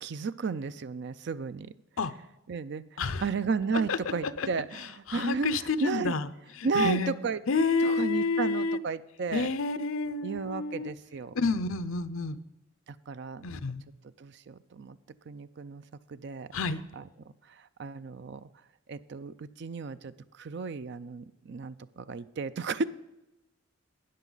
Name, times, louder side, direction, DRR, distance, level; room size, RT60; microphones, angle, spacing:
voice 1, 0.0-1.7 2.5-2.8 3.2-6.1 6.6-7.4 7.8-9.5 10.2-11.3 12.9-13.6 14.2-15.0 15.3-15.8 16.1-16.5 17.0-17.1 17.5-18.5 18.9-22.8, right 5 dB, 55° right, 14 dB, 0.4 m, -33 dB
voice 2, 5.1-6.3 6.6-7.1 7.5-8.8 9.3-10.9 11.3-12.4 13.4-13.8 16.5-16.8, left 4 dB, 80° left, 13 dB, 0.6 m, -29 dB
13.0 x 9.2 x 4.0 m, 0.96 s
head